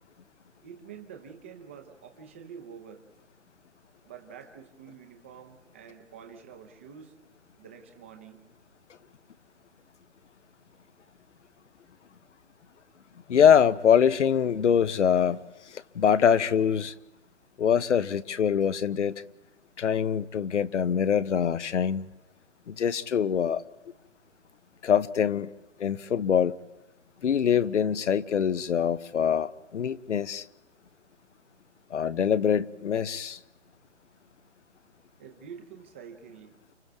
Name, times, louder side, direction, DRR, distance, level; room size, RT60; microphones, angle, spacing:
voice 1, 0.6-3.0 4.0-7.1 7.6-8.4 35.2-36.6, right 7 dB, 10° right, 0.7 m, -47 dB
voice 2, 13.3-15.4 15.7-16.9 17.6-19.1 19.8-22.1 22.7-23.6 24.8-25.5 25.8-26.6 27.2-30.5 31.9-33.4, left 8 dB, 80° left, 0.9 m, -24 dB
29.5 x 27.0 x 3.5 m
hypercardioid pair, 170°, 35 cm